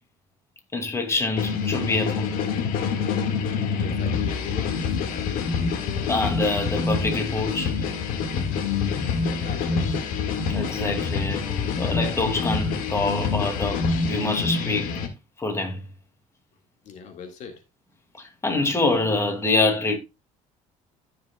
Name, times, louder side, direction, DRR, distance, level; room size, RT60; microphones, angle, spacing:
voice 1, 0.7-2.3 6.1-7.7 10.5-11.5 11.8-15.0 15.4-15.8 18.2-20.0, left 2 dB, 20° left, 2.3 m, -25 dB
sound 1, 1.4-15.1, left 5 dB, 80° left, 1.9 m, -26 dB
voice 2, 3.8-5.5 9.3-10.1 16.8-17.6, left 6 dB, 60° left, 2.0 m, -40 dB
14.5 x 6.6 x 2.3 m
cardioid pair, 115°, 14 cm